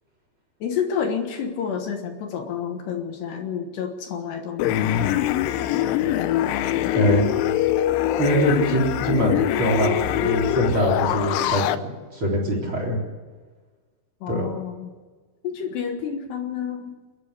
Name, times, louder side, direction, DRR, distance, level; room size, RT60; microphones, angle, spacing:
voice 1, 0.6-5.2 14.2-14.9 15.4-16.9, left 7 dB, 70° left, 4 dB, 3.3 m, -29 dB
sound 1, 4.6-11.8, left 12 dB, 85° left, 3.3 m, -23 dB
voice 2, 6.9-7.3 8.2-13.0 14.3-14.5, right 1 dB, 30° right, 0 dB, 4.1 m, -23 dB
29.0 x 11.0 x 8.2 m, 1.4 s
omnidirectional pair, 5.5 m